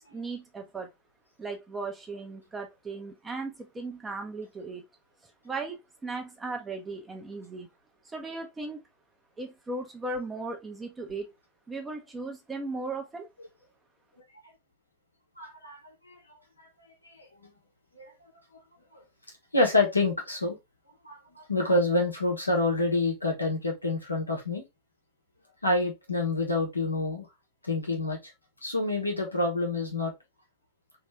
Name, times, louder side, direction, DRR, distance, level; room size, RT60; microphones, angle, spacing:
voice 1, 0.1-0.9 1.4-4.8 5.2-7.7 8.1-8.8 9.4-11.3 11.7-13.3, right 3 dB, 15° right, 0.8 m, -37 dB
voice 2, 15.4-16.2 16.6-16.7 17.2-17.3 17.9-18.1 19.5-20.6 21.0-24.6 25.6-27.3 27.6-28.2 28.6-30.1, left 2 dB, 85° left, 1.2 m, -27 dB
3.1 x 3.0 x 3.3 m
figure-of-eight pair, 90°, 0 cm